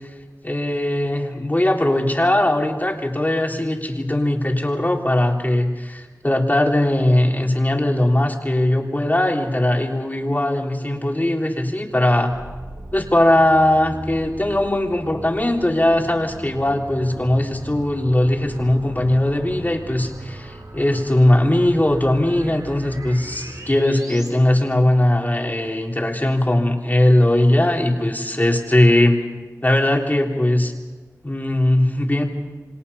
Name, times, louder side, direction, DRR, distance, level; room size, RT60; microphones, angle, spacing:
voice 1, 0.4-12.3 12.9-29.2 29.6-30.7 31.2-32.2, left 1 dB, 30° left, 1 dB, 3.5 m, -19 dB
sound 1, 12.3-24.3, right 1 dB, 85° right, 3.8 m, -38 dB
28.0 x 26.0 x 5.6 m, 1.3 s
wide cardioid pair, 50°, 6 cm